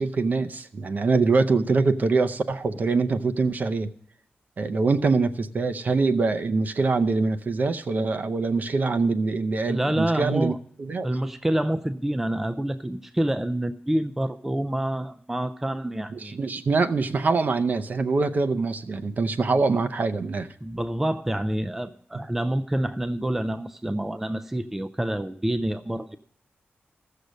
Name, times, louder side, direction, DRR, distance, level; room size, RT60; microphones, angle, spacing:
voice 1, 0.0-3.9 4.6-11.1 16.1-20.5, right 4 dB, 45° right, 9 dB, 0.6 m, -24 dB
voice 2, 9.7-10.6 11.0-16.4 19.5-19.6 20.6-26.2, right 1 dB, 10° right, 10 dB, 0.4 m, -27 dB
15.0 x 6.6 x 6.4 m, 0.64 s
wide cardioid pair, 160°, 4 cm